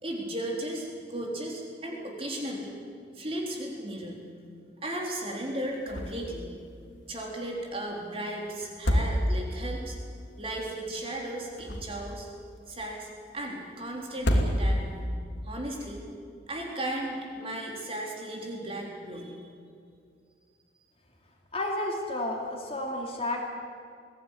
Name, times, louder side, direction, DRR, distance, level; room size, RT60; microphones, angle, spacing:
voice 1, 0.0-2.8 3.1-4.2 4.8-6.5 7.1-10.0 10.4-12.3 12.7-13.1 13.3-15.1 15.4-16.0 16.5-19.4, right 1 dB, 30° right, -1 dB, 3.8 m, -35 dB
sound 1, 5.9-6.4 6.7-6.8 8.6-9.7 11.4-12.2 14.1-15.0, equal, 90° left, 2.8 m, -27 dB
voice 2, 21.5-23.4, left 1 dB, 35° left, 1 dB, 2.8 m, -31 dB
21.0 x 17.0 x 9.9 m, 2.3 s
head